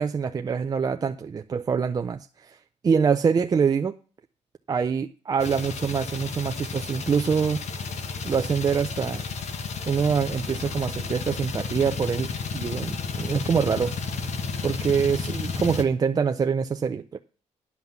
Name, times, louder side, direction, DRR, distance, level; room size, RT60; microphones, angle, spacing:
voice 1, 0.0-2.6 2.8-3.9 4.7-7.6 8.2-9.2 9.9-14.0 14.6-17.2, right 6 dB, 30° right, 6 dB, 0.5 m, -25 dB
sound 1, 5.4-15.8, left 5 dB, 60° left, 1.4 m, -32 dB
11.0 x 5.8 x 7.0 m, 0.38 s
wide cardioid pair, 155°, 13 cm